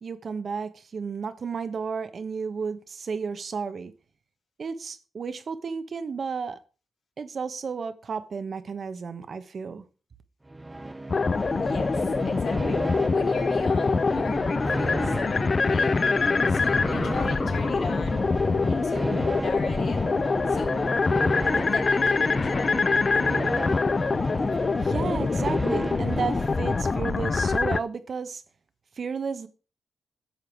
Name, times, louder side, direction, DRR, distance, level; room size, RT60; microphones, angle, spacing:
voice 1, 0.0-3.9 4.6-6.6 7.2-9.8 24.8-28.4 29.0-29.5, right 5 dB, 55° right, 1.1 m, -32 dB
sound 1, 10.5-27.3, right 2 dB, 20° right, 0.8 m, -33 dB
sound 2, 11.1-27.8, left 4 dB, 45° left, 0.5 m, -25 dB
voice 2, 11.6-16.0 16.5-18.2 18.7-20.1 20.5-20.8 21.5-22.8 23.2-23.3, left 4 dB, 65° left, 4.2 m, -38 dB
11.5 x 6.9 x 4.6 m
cardioid pair, 75°, 0 cm